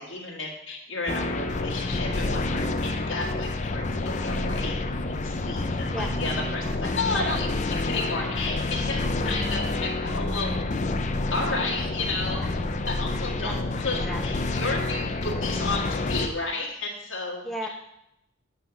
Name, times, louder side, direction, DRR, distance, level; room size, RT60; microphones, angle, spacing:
voice 1, 0.0-4.7 5.0-10.6 11.3-12.4 12.9-17.4, left 3 dB, 80° left, -3 dB, 1.7 m, -32 dB
sound 1, 1.1-16.3, left 2 dB, 35° left, 0.5 m, -28 dB
voice 2, 14.1-14.5 17.4-17.7, equal, ahead, 2 dB, 0.7 m, -35 dB
8.8 x 3.8 x 6.9 m, 0.81 s
head